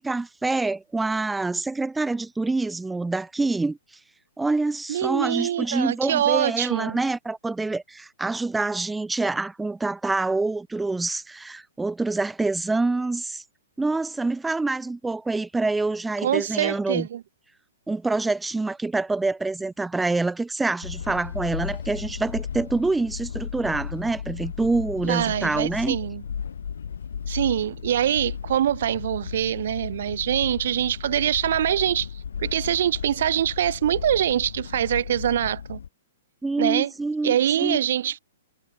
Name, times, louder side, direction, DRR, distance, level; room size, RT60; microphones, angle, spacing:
voice 1, 0.0-3.8 4.4-13.4 13.8-17.1 17.9-26.0 36.4-37.8, right 3 dB, 5° right, 1.1 m, -26 dB
voice 2, 4.9-7.0 16.2-17.2 25.0-26.2 27.3-32.1 32.4-35.8 36.6-36.9 37.2-38.2, right 10 dB, 65° right, 1.4 m, -24 dB
sound 1, 20.8-35.9, left 7 dB, 80° left, 0.9 m, -35 dB
hypercardioid pair, 135°, 0 cm